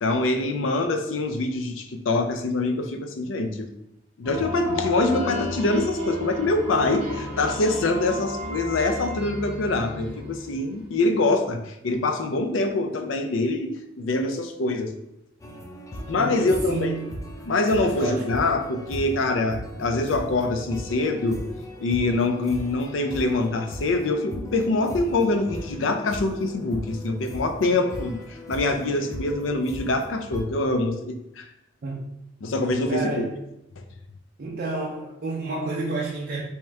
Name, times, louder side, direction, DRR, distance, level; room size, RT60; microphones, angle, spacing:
voice 1, 0.0-3.7 4.2-14.9 16.1-17.0 17.5-21.4 21.8-28.2 28.5-31.5 32.4-33.2, left 2 dB, 90° left, 6 dB, 0.5 m, -24 dB
sound 1, 4.2-10.8, left 1 dB, 5° right, 1.1 m, -32 dB
sound 2, 15.4-30.4, equal, 15° left, 0.3 m, -38 dB
voice 2, 16.2-17.2 17.8-18.5 27.7-27.8 28.9-29.0 31.8-32.1 32.9-33.4 34.4-36.4, right 2 dB, 50° right, -2 dB, 0.4 m, -31 dB
3.4 x 2.9 x 3.2 m, 0.83 s
head